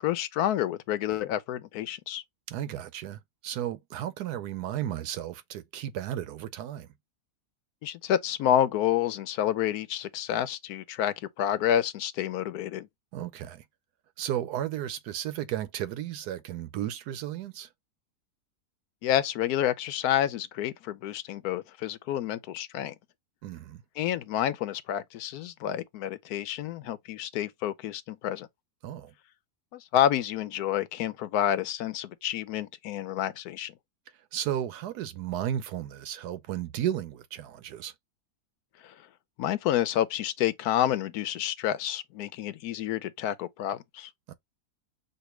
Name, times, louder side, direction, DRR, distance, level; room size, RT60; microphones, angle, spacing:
voice 1, 0.0-2.2 7.8-12.9 19.0-22.9 24.0-28.5 29.7-33.7 38.8-38.9 39.4-44.1, left 11 dB, 75° left, 1.1 m, -29 dB
voice 2, 2.5-6.9 13.1-13.6 14.2-17.7 23.4-23.8 28.8-29.1 34.3-37.9 44.3-44.4, right 11 dB, 85° right, 1.2 m, -34 dB
6.5 x 2.5 x 3.1 m
omnidirectional pair, 1.7 m